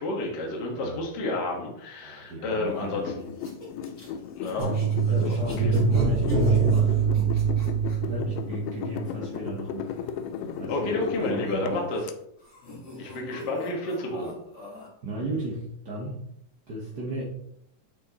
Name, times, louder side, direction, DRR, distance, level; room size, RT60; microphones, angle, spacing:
voice 1, 0.0-3.0 4.4-4.7 5.1-5.7 10.7-12.0 13.0-14.3, left 2 dB, 45° left, -1 dB, 1.5 m, -30 dB
voice 2, 0.7-1.1 2.0-3.3 5.1-7.5 8.1-9.9 10.6-11.8 13.0-13.4 15.0-16.2 16.7-17.2, equal, 70° right, -4 dB, 0.9 m, -35 dB
sound 1, 2.7-12.1, left 7 dB, 80° left, 2.2 m, -36 dB
sound 2, 3.3-8.0 9.8-12.1 12.4-14.9, left 2 dB, 25° left, 1.5 m, -44 dB
sound 3, 4.6-9.0 9.3-9.4, right 6 dB, 90° right, 3.4 m, -24 dB
8.4 x 6.5 x 3.1 m, 0.76 s
omnidirectional pair, 3.9 m